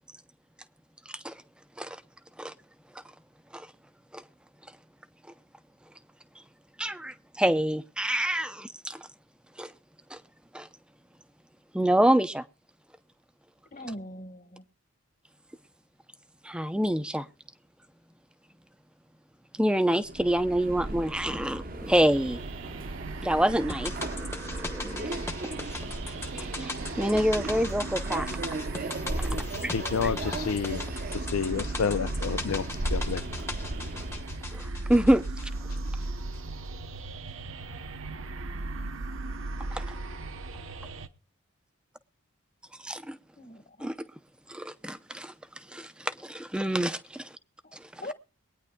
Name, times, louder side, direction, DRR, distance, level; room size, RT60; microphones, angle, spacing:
voice 1, 1.1-1.4 1.8-2.0 2.4-2.5 3.5-3.7 4.1-4.2 6.8-9.1 9.6-9.7 10.1-10.2 10.5-10.7 11.7-12.4 16.4-17.3 19.5-22.4 23.2-25.3 26.1-28.3 29.2-29.7 34.5-35.2 39.7-39.9 42.8-43.2 43.8-44.1 44.5-47.4 47.7-48.1, right 1 dB, 5° right, 0.5 m, -27 dB
voice 2, 13.7-14.6 43.4-43.9 48.0-48.1, left 1 dB, 40° left, 1.3 m, -40 dB
Subway metro underground, 20.0-34.4, right 2 dB, 40° right, 0.8 m, -36 dB
sound 1, 22.1-41.1, right 2 dB, 70° right, 0.9 m, -38 dB
sound 2, 23.7-36.1 36.3-36.4, left 2 dB, 10° left, 0.9 m, -39 dB
voice 3, 29.7-30.8 31.1-33.2, left 6 dB, 90° left, 0.5 m, -30 dB
23.0 x 9.7 x 2.2 m
head